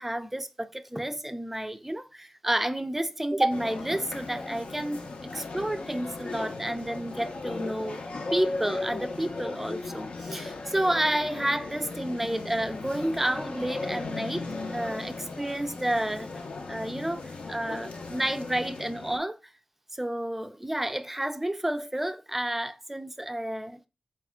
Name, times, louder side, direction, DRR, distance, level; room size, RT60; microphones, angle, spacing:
voice 1, 0.0-16.3 16.7-19.5 19.9-23.8, right 1 dB, 10° right, 0.3 m, -30 dB
sound 1, 3.5-19.2, left 3 dB, 75° left, 0.5 m, -37 dB
4.2 x 2.4 x 3.5 m
wide cardioid pair, 100°, 2 cm